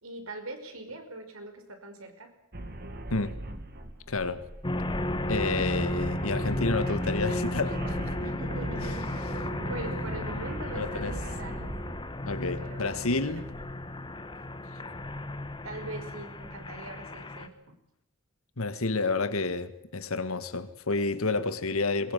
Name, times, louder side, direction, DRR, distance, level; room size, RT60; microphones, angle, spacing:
voice 1, 0.0-2.3 8.2-9.4 9.7-11.7 12.6-13.4 15.6-17.8, right 2 dB, 80° right, 5.4 m, -42 dB
sound 1, 2.5-12.1, right 1 dB, 50° right, 2.3 m, -39 dB
voice 2, 4.1-4.5 5.3-8.2 10.8-11.1 12.3-13.5 14.7-14.8 18.6-22.1, left 3 dB, 80° left, 1.7 m, -30 dB
sound 2, 4.6-17.5, left 1 dB, 25° left, 1.4 m, -34 dB
22.0 x 21.5 x 9.3 m
head